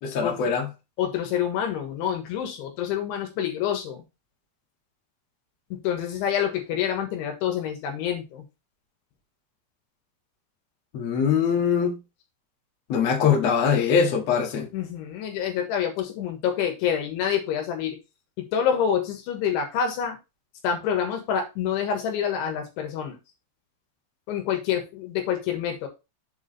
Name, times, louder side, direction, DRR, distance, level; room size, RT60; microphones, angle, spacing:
voice 1, 0.0-0.7 10.9-12.0 12.9-14.7, left 6 dB, 55° left, 1.9 m, -22 dB
voice 2, 1.0-4.0 5.7-8.4 14.7-18.0 18.4-20.2 20.6-23.2 24.3-25.9, left 8 dB, 80° left, 3.9 m, -27 dB
7.4 x 4.9 x 4.2 m
omnidirectional pair, 5.5 m